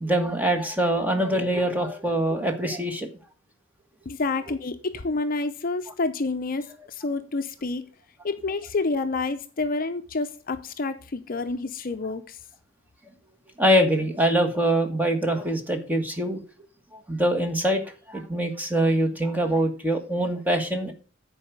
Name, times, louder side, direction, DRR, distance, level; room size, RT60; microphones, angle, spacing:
voice 1, 0.0-3.1 13.6-16.4 17.1-17.8 18.1-20.9, right 1 dB, 10° right, 1.4 m, -24 dB
voice 2, 4.1-7.9 8.2-12.4, left 3 dB, 45° left, 0.6 m, -29 dB
9.7 x 4.7 x 6.8 m
head